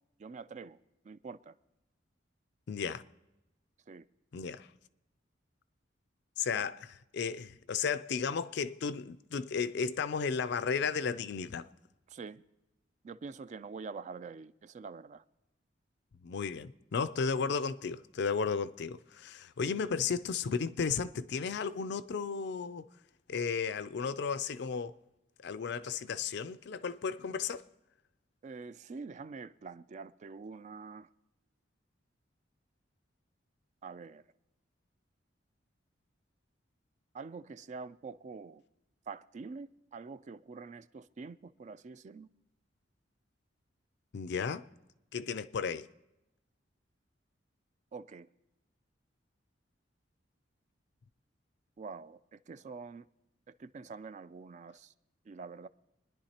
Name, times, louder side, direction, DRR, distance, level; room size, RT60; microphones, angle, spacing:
voice 1, 0.2-0.8 1.0-1.5 3.9-4.1 12.1-12.4 13.0-15.2 28.4-31.1 33.8-34.2 37.1-38.6 39.1-42.3 47.9-48.3 51.8-53.1 53.5-54.9 55.3-55.7, right 4 dB, 40° right, 0.3 m, -46 dB
voice 2, 2.7-3.0 4.3-4.7 6.4-6.9 7.1-11.7 16.2-22.9 23.3-25.0 25.4-27.6 44.1-44.7 45.1-45.9, left 5 dB, 65° left, 0.4 m, -34 dB
26.5 x 10.5 x 2.9 m
head